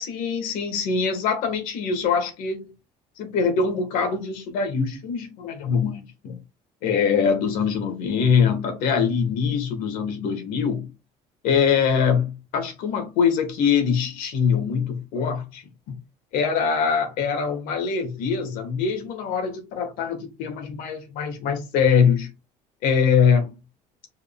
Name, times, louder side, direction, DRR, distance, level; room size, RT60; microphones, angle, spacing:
voice 1, 0.0-2.7 3.2-6.4 6.8-10.9 11.4-16.0 16.3-22.3 22.8-23.5, left 6 dB, 80° left, 1.5 m, -23 dB
4.7 x 3.5 x 2.3 m
cardioid pair, 150°, 14 cm